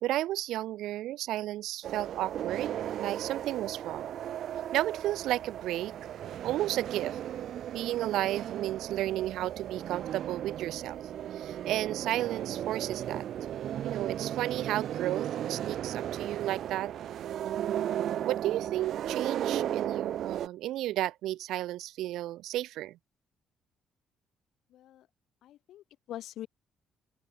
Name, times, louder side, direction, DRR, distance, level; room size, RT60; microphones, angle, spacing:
voice 1, 0.0-4.1 4.7-5.9 6.4-7.2 7.7-11.0 11.3-13.2 13.8-16.9 18.2-23.0, right 14 dB, 90° right, 1.5 m, -33 dB
sound 1, 1.8-20.5, right 11 dB, 55° right, 0.8 m, -35 dB
voice 2, 24.7-25.1 25.4-26.5, left 13 dB, 70° left, 0.7 m, -44 dB
open air
cardioid pair, 175°, 0 cm